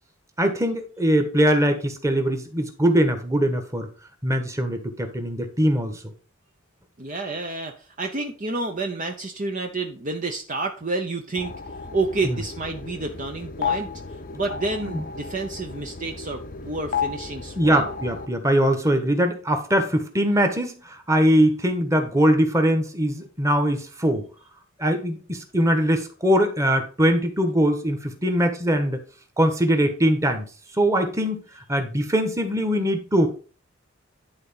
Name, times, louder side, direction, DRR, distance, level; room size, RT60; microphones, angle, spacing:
voice 1, 0.4-3.9 4.2-5.9 12.2-12.4 14.8-15.0 17.6-24.2 24.8-29.0 29.4-30.4 30.8-31.4 31.7-33.3, equal, 15° right, 6 dB, 1.4 m, -21 dB
voice 2, 7.0-11.5 11.9-13.9 14.3-17.9, right 3 dB, 40° right, 4 dB, 0.8 m, -29 dB
sound 1, 11.4-18.3, left 6 dB, 40° left, 0.7 m, -33 dB
11.0 x 4.0 x 5.6 m, 0.38 s
head